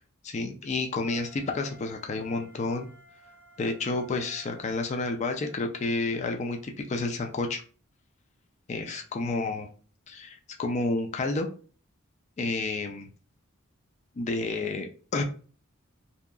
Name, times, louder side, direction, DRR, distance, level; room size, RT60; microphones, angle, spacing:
voice 1, 0.2-2.9 3.6-7.6 8.7-9.7 10.1-11.5 12.4-13.1 14.2-15.2, left 3 dB, 35° left, 4 dB, 0.3 m, -30 dB
Wind instrument woodwind instrument, 1.0-5.8, equal, 10° right, 0.6 m, -55 dB
2.7 x 2.3 x 2.3 m, 0.38 s
head